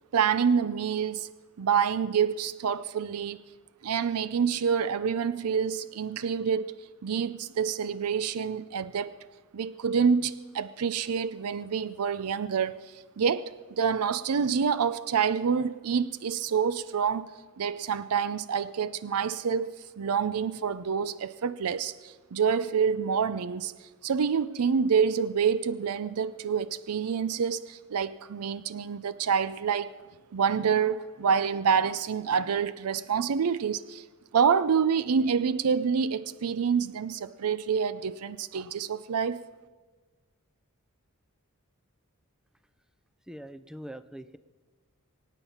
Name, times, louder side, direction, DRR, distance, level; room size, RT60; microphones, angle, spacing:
voice 1, 0.1-1.3 1.6-3.4 3.8-6.8 7.0-9.1 9.5-12.8 13.2-23.7 24.0-29.9 30.3-34.0 34.3-39.4, right 6 dB, 85° right, 0.5 m, -27 dB
voice 2, 43.3-44.4, equal, 5° right, 0.5 m, -42 dB
24.5 x 9.1 x 5.7 m
head